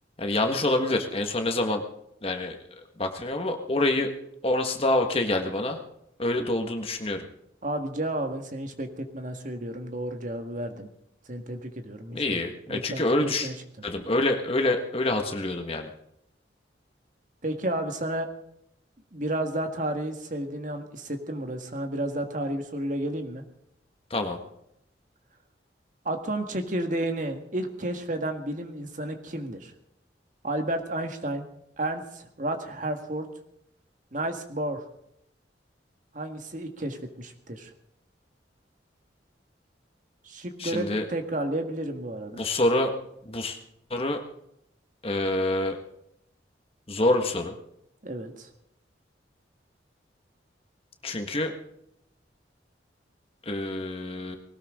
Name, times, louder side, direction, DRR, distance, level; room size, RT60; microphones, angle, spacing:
voice 1, 0.2-1.8 2.2-2.6 3.0-4.1 4.4-5.8 6.2-7.3 12.1-13.5 13.8-15.9 24.1-24.4 40.6-41.0 42.3-43.0 43.3-43.6 43.9-44.2 45.0-45.8 46.9-47.5 51.0-51.5 53.5-54.4, left 2 dB, 30° left, 4 dB, 1.6 m, -26 dB
voice 2, 7.6-10.9 11.3-12.4 12.7-13.5 17.4-18.3 19.1-23.4 26.1-29.7 30.4-31.4 31.8-33.3 34.1-34.8 36.1-37.7 40.2-42.5 48.0-48.5, right 1 dB, 45° right, 5 dB, 1.7 m, -32 dB
20.0 x 18.5 x 3.8 m, 0.77 s
head